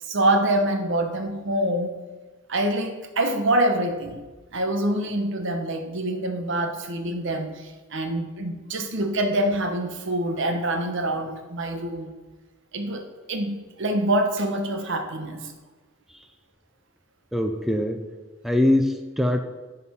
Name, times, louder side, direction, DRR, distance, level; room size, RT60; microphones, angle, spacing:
voice 1, 0.0-2.0 2.5-4.2 4.5-12.1 12.7-13.0 13.3-15.5, right 1 dB, 65° right, 6 dB, 1.0 m, -25 dB
voice 2, 17.3-18.1 18.4-19.4, left 1 dB, ahead, 5 dB, 0.4 m, -22 dB
9.9 x 4.2 x 5.5 m, 1.2 s
head